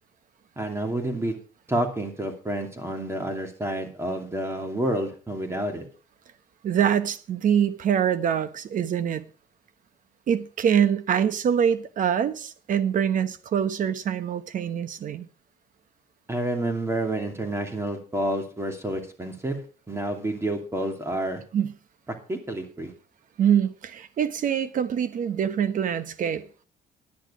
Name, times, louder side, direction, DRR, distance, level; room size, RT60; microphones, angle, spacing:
voice 1, 0.6-1.3 1.7-5.9 16.3-19.6 19.9-21.4 22.3-22.9, right 1 dB, 15° right, 2.6 m, -29 dB
voice 2, 6.6-9.2 10.3-15.3 21.5-21.7 23.4-26.4, right 8 dB, 50° right, 1.2 m, -24 dB
11.0 x 10.0 x 5.0 m
cardioid pair, 110°, 17 cm